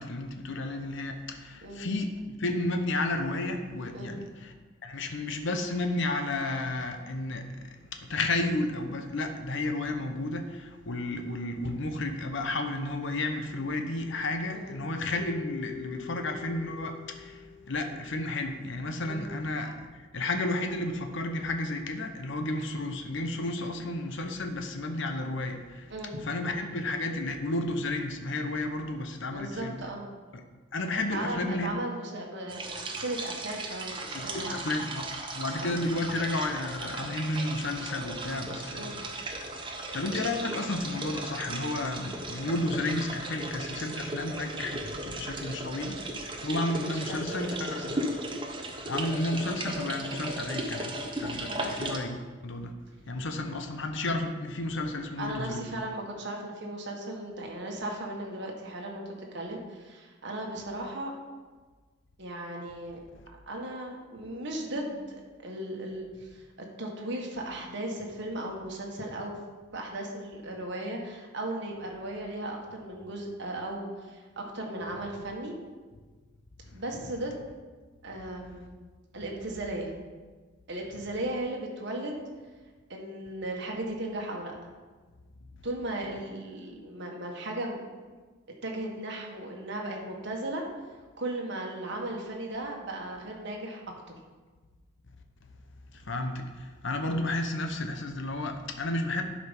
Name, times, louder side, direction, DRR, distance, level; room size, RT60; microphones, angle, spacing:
voice 1, 0.0-4.5 4.8-25.9 26.2-29.8 30.3-30.4 30.7-31.7 34.1-35.1 35.3-39.3 39.9-48.2 48.9-52.7 53.1-55.7 76.7-76.8 95.9-99.2, left 2 dB, 60° left, 5 dB, 0.8 m, -32 dB
Keyboard (musical), 15.2-18.4, left 10 dB, 30° left, 0.6 m, -45 dB
voice 2, 29.3-30.1 31.1-34.6 35.6-35.8 38.7-39.0 46.8-48.0 51.4-51.7 55.2-59.0 59.3-61.1 62.2-63.0 63.5-66.5 66.8-69.4 69.7-75.6 76.7-77.3 78.0-78.7 79.1-79.9 80.7-82.2 82.9-84.5 85.6-87.9 88.6-90.6 91.2-93.8 94.1-94.2, right 1 dB, 55° right, 0 dB, 1.7 m, -36 dB
sound 1, 32.5-52.0, right 1 dB, 25° right, 1.0 m, -36 dB
11.5 x 5.2 x 5.3 m, 1.4 s
head